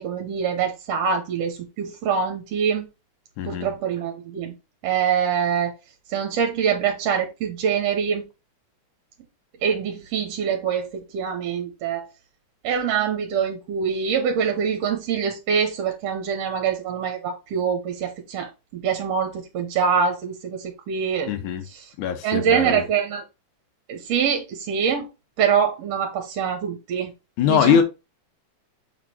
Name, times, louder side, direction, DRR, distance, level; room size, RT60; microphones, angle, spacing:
voice 1, 0.0-2.9 3.5-4.5 4.8-5.7 6.1-8.3 9.6-12.1 12.6-18.5 18.7-21.3 21.7-21.9 22.2-23.2 23.9-25.1 25.4-27.1 27.4-27.8, right 7 dB, 70° right, 1.9 m, -24 dB
voice 2, 3.4-3.7 21.3-21.7 22.0-22.8 27.4-27.8, left 9 dB, 90° left, 2.4 m, -21 dB
6.6 x 3.7 x 4.3 m
omnidirectional pair, 3.3 m